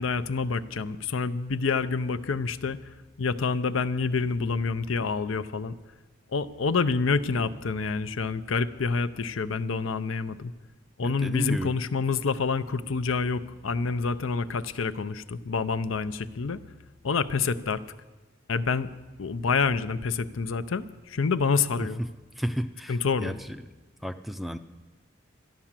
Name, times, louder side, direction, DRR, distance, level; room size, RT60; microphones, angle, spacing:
voice 1, 0.0-2.8 3.2-5.8 6.3-10.5 11.0-16.6 17.0-17.8 18.5-18.9 19.2-22.0 22.9-23.3, left 4 dB, 80° left, 12 dB, 0.6 m, -27 dB
voice 2, 11.0-11.8 21.8-22.1 22.4-23.6 24.0-24.6, equal, ahead, 10 dB, 0.4 m, -32 dB
12.0 x 11.5 x 7.4 m, 1.2 s
head